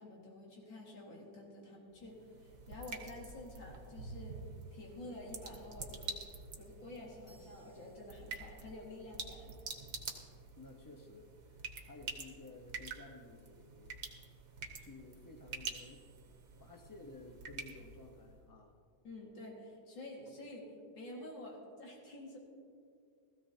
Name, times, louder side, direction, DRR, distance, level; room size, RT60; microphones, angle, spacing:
voice 1, 0.0-4.4 4.7-6.1 6.6-9.5 19.0-22.4, left 1 dB, 85° left, -2 dB, 2.8 m, -49 dB
sound 1, 0.7-2.0 7.3-8.7 15.7-17.9, right 4 dB, 45° left, 3.1 m, -73 dB
sound 2, 1.9-18.4, right 4 dB, 60° right, 1.6 m, -48 dB
voice 2, 10.5-14.0 14.8-16.1 16.6-18.8, left 2 dB, 15° left, 2 dB, 0.8 m, -54 dB
16.5 x 15.0 x 2.8 m, 2.3 s
omnidirectional pair, 2.0 m